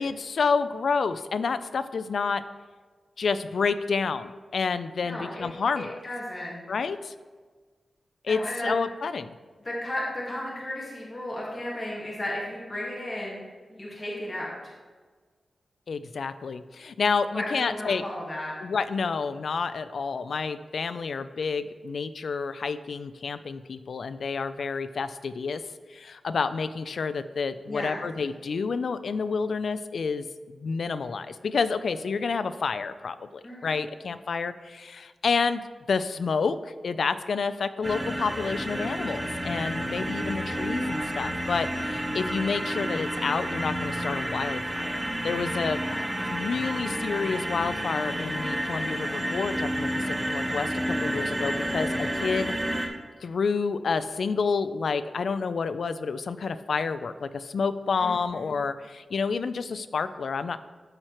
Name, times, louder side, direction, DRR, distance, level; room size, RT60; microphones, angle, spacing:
voice 1, 0.0-2.4 3.2-6.0 6.7-7.1 8.2-9.3 15.9-18.0 18.6-25.6 25.9-46.0 46.3-52.9 53.2-60.6, left 5 dB, 70° left, 13 dB, 0.3 m, -29 dB
voice 2, 5.0-5.5 5.8-6.6 8.3-8.7 9.6-13.4 13.7-14.5 17.3-18.5 27.7-28.0 33.4-33.7 45.8-46.1 58.0-58.6, left 1 dB, 25° left, -6 dB, 1.6 m, -34 dB
sound 1, 37.8-52.9, equal, 10° right, 0.8 m, -30 dB
12.5 x 4.4 x 3.0 m, 1.4 s
wide cardioid pair, 120°, 0 cm